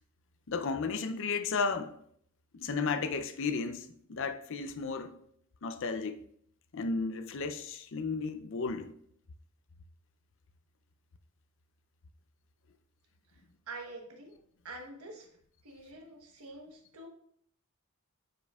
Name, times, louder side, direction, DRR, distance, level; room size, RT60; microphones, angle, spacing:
voice 1, 0.5-1.9 2.5-5.2 5.6-6.2 6.7-8.9, left 4 dB, 60° left, 0.5 m, -33 dB
voice 2, 13.7-14.4 14.6-15.3 15.6-17.1, right 2 dB, 85° right, 1.2 m, -46 dB
9.1 x 5.3 x 2.4 m
head